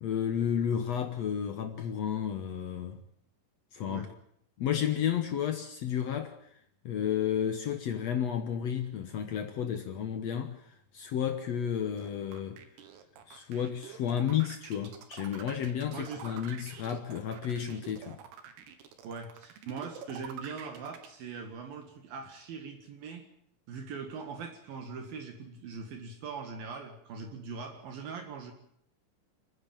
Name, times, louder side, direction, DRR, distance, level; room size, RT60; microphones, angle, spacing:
voice 1, 0.0-3.0 3.7-4.1 4.6-6.5 6.8-12.6 13.3-18.2, left 9 dB, 80° left, 1.5 m, -32 dB
sound 1, 12.0-21.1, right 8 dB, 85° right, 3.8 m, -47 dB
voice 2, 15.9-16.3 19.0-23.3 23.7-28.5, right 5 dB, 65° right, 3.5 m, -41 dB
29.0 x 10.0 x 8.8 m
omnidirectional pair, 4.6 m